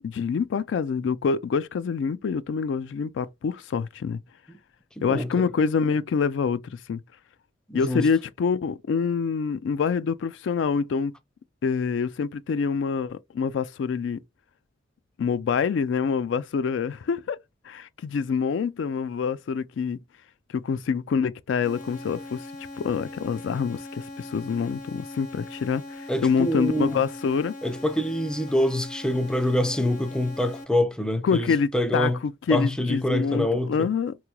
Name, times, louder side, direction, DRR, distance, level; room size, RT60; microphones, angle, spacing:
voice 1, 0.0-4.2 5.0-6.6 6.9-7.0 7.7-11.1 11.6-14.2 15.2-17.4 17.7-20.0 20.5-22.4 22.8-27.5 31.2-34.1, left 5 dB, 75° left, 0.3 m, -26 dB
voice 2, 5.0-5.5 7.7-8.1 26.1-27.0 27.6-32.2 32.5-33.9, left 1 dB, 5° left, 0.4 m, -26 dB
sound 1, 21.6-30.6, left 2 dB, 45° left, 0.9 m, -40 dB
3.7 x 3.0 x 2.2 m
head